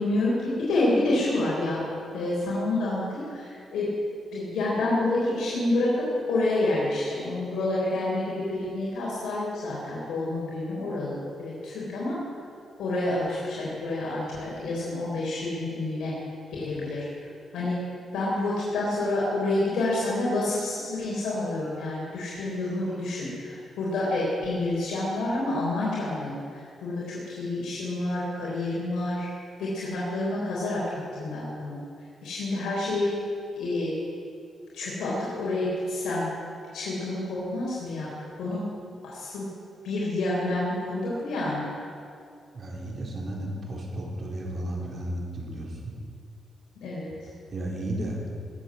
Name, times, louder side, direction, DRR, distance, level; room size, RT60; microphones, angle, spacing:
voice 1, 0.0-1.8 2.1-3.9 4.3-12.2 12.8-16.2 16.6-17.0 17.5-17.8 18.1-29.3 29.6-31.8 32.2-33.1 33.6-33.9 34.7-36.3 36.7-38.1 38.4-38.6 39.0-39.5 39.8-41.7 46.8-47.1, left 2 dB, 90° left, -6 dB, 3.7 m, -28 dB
voice 2, 42.5-46.0 47.5-48.2, right 1 dB, 45° right, -2 dB, 4.1 m, -33 dB
19.5 x 8.0 x 7.4 m, 2.4 s
cardioid pair, 95°, 0 cm